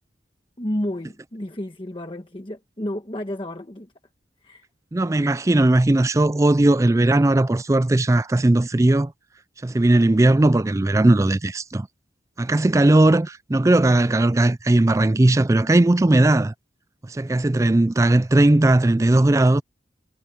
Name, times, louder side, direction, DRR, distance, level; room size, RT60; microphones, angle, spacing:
voice 1, 0.6-3.9 4.4-4.6, left 1 dB, 30° left, 1.3 m, -31 dB
voice 2, 4.9-9.1 9.6-11.9 12.4-16.5 17.1-19.6, right 2 dB, 15° right, 0.4 m, -18 dB
head